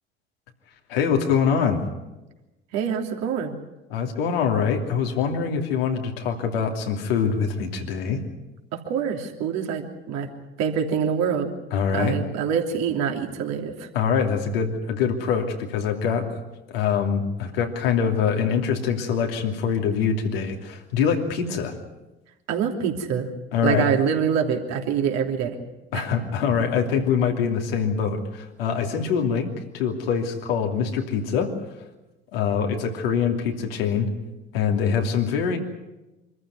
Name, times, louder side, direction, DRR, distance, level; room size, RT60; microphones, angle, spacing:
voice 1, 0.9-1.8 3.9-8.2 11.7-12.2 13.9-16.3 16.7-21.7 23.5-23.9 25.9-31.5 32.3-34.1 34.5-35.6, left 6 dB, 75° left, 3 dB, 2.9 m, -24 dB
voice 2, 2.7-3.5 8.7-10.3 10.6-11.5 11.9-13.9 22.5-23.3 23.6-25.6 25.9-26.1, right 7 dB, 60° right, 3 dB, 3.1 m, -25 dB
25.5 x 14.5 x 9.6 m, 1.0 s
figure-of-eight pair, 55°, 30 cm